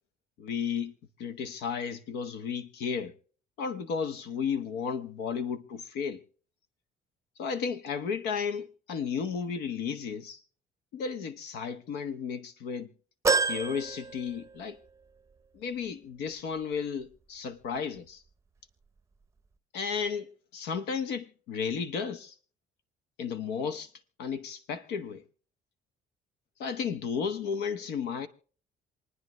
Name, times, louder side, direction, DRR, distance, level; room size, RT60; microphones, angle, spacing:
voice 1, 0.4-3.1 3.6-6.2 7.4-10.4 10.9-12.9 13.4-14.8 15.5-18.2 19.7-22.3 23.2-23.9 24.2-25.2 26.6-28.3, left 6 dB, 90° left, 1.1 m, -33 dB
sound 1, 13.2-14.9 15.3-15.4 16.6-16.7, right 4 dB, 15° right, 0.6 m, -29 dB
27.5 x 9.6 x 3.1 m
cardioid pair, 110°, 17 cm